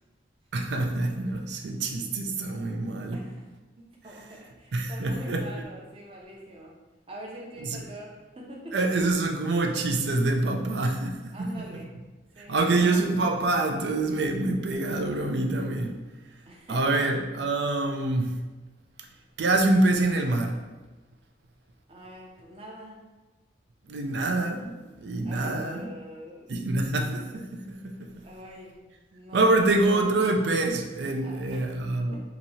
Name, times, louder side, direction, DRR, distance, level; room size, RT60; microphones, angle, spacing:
voice 1, 0.5-3.2 4.7-5.4 7.6-7.9 8.7-11.8 12.5-16.0 16.7-18.4 19.0-19.1 19.4-20.6 23.9-25.9 26.5-28.1 29.3-32.2, right 2 dB, 70° right, 4 dB, 0.4 m, -26 dB
voice 2, 3.8-6.8 7.1-8.8 11.3-11.9 12.3-12.8 16.5-17.1 21.9-23.0 25.2-26.6 28.2-28.8 29.1-29.7 31.2-31.7 31.9-32.2, right 1 dB, 30° right, -3 dB, 0.7 m, -44 dB
3.0 x 2.7 x 4.1 m, 1.1 s
head